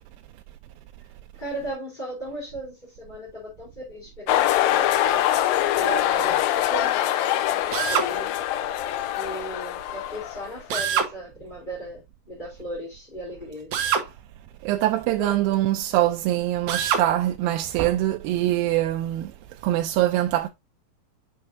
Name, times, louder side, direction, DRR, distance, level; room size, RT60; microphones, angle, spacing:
voice 1, 1.4-5.3 5.7-8.4 9.1-13.9 15.1-15.3, right 1 dB, 15° left, 3.2 m, -36 dB
sound 1, 4.3-10.6, left 13 dB, 80° left, 2.4 m, -24 dB
Drill, 7.7-8.1 10.7-11.1 13.7-14.1 16.7-17.1, right 7 dB, 65° right, 2.1 m, -24 dB
voice 2, 14.6-20.5, right 14 dB, 85° right, 2.3 m, -23 dB
7.6 x 5.5 x 2.6 m
omnidirectional pair, 4.2 m